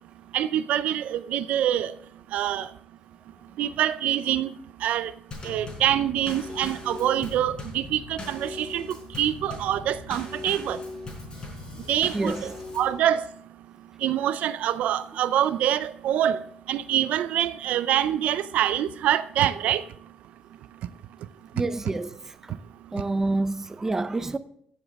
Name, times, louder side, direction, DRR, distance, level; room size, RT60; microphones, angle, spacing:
voice 1, 0.3-1.9 2.3-2.7 3.6-4.5 4.8-5.1 5.4-10.8 11.9-13.2 14.0-16.4 16.7-19.8, right 11 dB, 75° right, 0.4 m, -25 dB
Drum kit / Snare drum / Bass drum, 5.3-13.0, left 2 dB, 35° left, 4.5 m, -39 dB
voice 2, 12.1-12.5 21.5-22.5 22.9-24.4, right 2 dB, 15° right, 0.6 m, -28 dB
15.5 x 7.2 x 3.5 m
cardioid pair, 115°, 2 cm